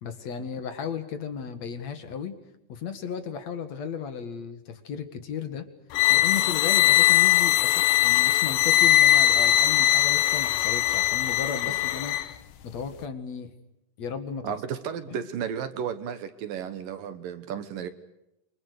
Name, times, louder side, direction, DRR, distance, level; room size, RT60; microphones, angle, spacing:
voice 1, 0.0-2.3 2.7-5.7 6.1-12.2 12.6-13.5 14.0-14.5 15.1-15.2, left 6 dB, 50° left, 9 dB, 2.6 m, -35 dB
sound 1, 5.9-12.3, left 14 dB, 85° left, 3.3 m, -21 dB
voice 2, 14.4-17.9, right 8 dB, 65° right, 11 dB, 2.7 m, -33 dB
28.5 x 25.5 x 6.6 m, 0.87 s
omnidirectional pair, 4.8 m